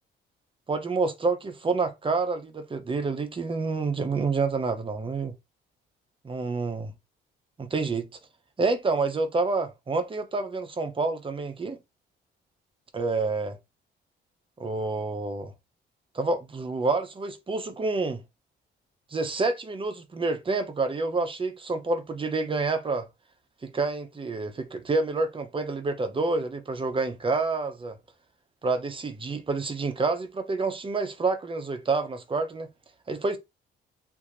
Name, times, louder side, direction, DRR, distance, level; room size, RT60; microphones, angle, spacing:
voice 1, 0.7-5.4 6.2-6.9 7.6-8.1 8.6-11.8 12.9-13.6 14.6-15.5 16.1-18.2 19.1-23.1 23.6-28.0 28.6-32.7 33.1-33.4, right 3 dB, 25° right, 0.7 m, -28 dB
2.9 x 2.6 x 2.5 m
cardioid pair, 90°, 20 cm